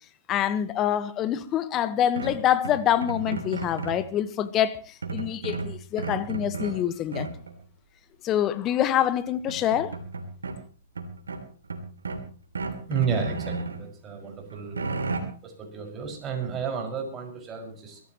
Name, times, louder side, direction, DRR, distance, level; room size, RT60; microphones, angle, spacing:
voice 1, 0.3-7.3 8.2-9.9, left 10 dB, 30° left, 1.3 m, -26 dB
sound 1, 2.2-4.1 5.0-6.8 7.1-7.6 8.8-8.9 9.3-10.6 11.0-12.3 12.6-13.8 14.2-15.2, right 3 dB, 90° right, 2.9 m, -33 dB
voice 2, 12.9-14.8 15.4-18.0, right 6 dB, 25° right, 5.7 m, -32 dB
23.0 x 14.5 x 3.1 m
hypercardioid pair, 125°, 0 cm